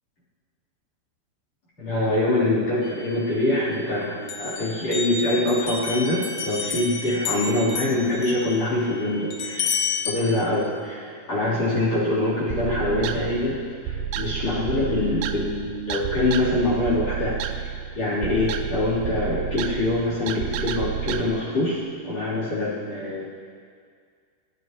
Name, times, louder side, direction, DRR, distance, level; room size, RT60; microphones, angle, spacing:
voice 1, 1.8-9.7 10.0-23.3, left 1 dB, 40° left, -7 dB, 4.2 m, -24 dB
sound 1, 2.8-3.9 4.3-10.1, left 5 dB, 75° left, 1.9 m, -31 dB
sound 2, 12.5-21.2, right 9 dB, 80° right, 2.1 m, -30 dB
24.0 x 16.0 x 3.0 m, 2.1 s
omnidirectional pair, 5.0 m